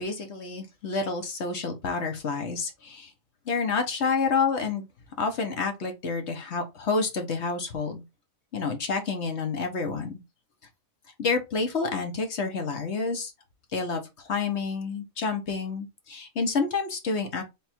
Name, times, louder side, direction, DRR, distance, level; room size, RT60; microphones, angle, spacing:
voice 1, 0.0-3.1 3.5-4.9 5.2-8.0 8.5-10.2 11.2-13.3 13.7-17.4, left 4 dB, 60° left, 1.3 m, -29 dB
3.5 x 3.1 x 4.4 m
omnidirectional pair, 1.4 m